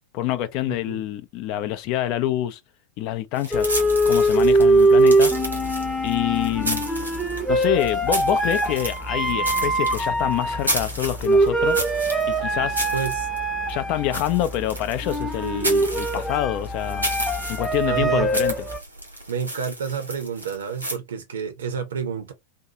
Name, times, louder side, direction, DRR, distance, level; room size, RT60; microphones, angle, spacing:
voice 1, 0.1-2.6 3.0-3.8 4.1-5.3 6.0-6.8 7.5-11.8 12.3-12.8 13.7-17.1 17.5-18.5, left 12 dB, 40° left, 0.4 m, -26 dB
voice 2, 0.7-1.0 12.9-13.3 17.9-18.3 19.3-22.3, right 6 dB, 65° right, 0.7 m, -29 dB
sound 1, 3.3-21.0, right 1 dB, 85° right, 1.2 m, -32 dB
sound 2, 3.5-18.8, right 2 dB, ahead, 0.7 m, -22 dB
2.7 x 2.3 x 2.7 m
figure-of-eight pair, 90°, 0 cm